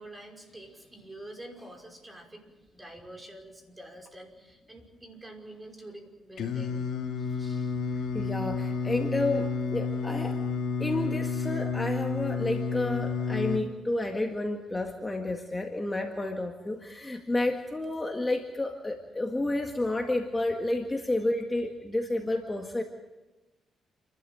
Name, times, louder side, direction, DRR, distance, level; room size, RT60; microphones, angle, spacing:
voice 1, 0.0-6.8 7.2-7.8, right 1 dB, 15° right, 2 dB, 5.4 m, -47 dB
Singing, 6.4-13.6, left 5 dB, 70° left, 2.5 m, -31 dB
voice 2, 8.1-10.4 10.8-22.8, left 2 dB, 15° left, 3 dB, 1.9 m, -30 dB
29.0 x 12.5 x 9.0 m, 1.1 s
cardioid pair, 90°, 0 cm